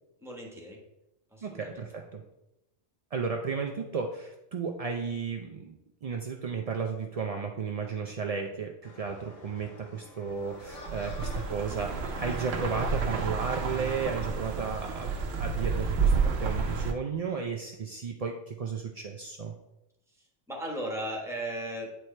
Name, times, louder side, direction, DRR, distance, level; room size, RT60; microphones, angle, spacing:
voice 1, 0.2-0.8 1.3-1.9 20.1-22.0, right 1 dB, ahead, 0 dB, 1.2 m, -37 dB
voice 2, 1.4-2.2 3.1-19.5, right 5 dB, 60° right, 3 dB, 0.4 m, -34 dB
sound 1, 8.8-13.8, left 3 dB, 85° left, 1.5 m, -47 dB
sound 2, 10.6-16.9, right 5 dB, 85° right, 1.1 m, -30 dB
8.9 x 4.6 x 3.2 m, 0.90 s
omnidirectional pair, 1.3 m